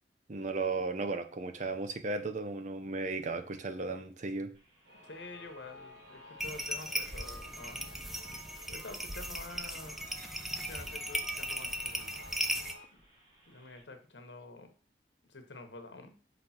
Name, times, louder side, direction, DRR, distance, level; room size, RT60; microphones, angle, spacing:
voice 1, 0.3-4.5, right 3 dB, 45° right, 8 dB, 0.6 m, -35 dB
sound 1, 4.5-13.8, equal, 25° right, 3.7 m, -63 dB
sound 2, 4.9-12.9, equal, 70° right, 1.3 m, -52 dB
voice 2, 5.0-7.9 8.7-10.0 10.7-12.1 12.9-13.0 13.5-14.7 15.3-16.2, left 2 dB, 80° left, 6 dB, 1.1 m, -48 dB
sound 3, 6.4-12.7, right 1 dB, ahead, 0.5 m, -37 dB
6.0 x 3.4 x 5.8 m, 0.39 s
head